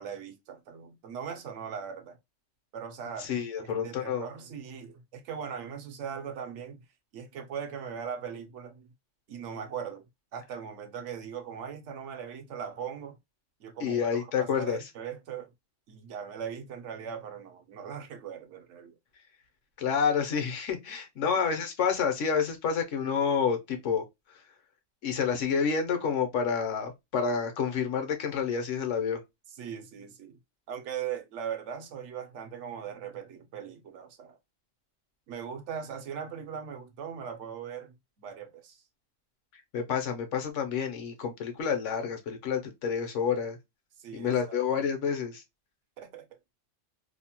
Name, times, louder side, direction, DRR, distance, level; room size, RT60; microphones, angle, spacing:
voice 1, 0.0-2.2 2.7-3.3 3.6-6.8 7.1-8.9 9.3-10.0 10.3-13.2 13.6-15.5 15.9-18.9 21.2-21.3 29.5-30.4 30.7-34.4 35.3-38.8 44.0-44.6 46.0-46.3, right 7 dB, 75° right, 0.9 m, -39 dB
voice 2, 3.2-4.3 13.8-14.8 19.8-24.0 25.0-29.2 39.7-43.6 44.1-45.4, left 6 dB, 75° left, 1.1 m, -29 dB
2.7 x 2.1 x 2.7 m
omnidirectional pair, 1.3 m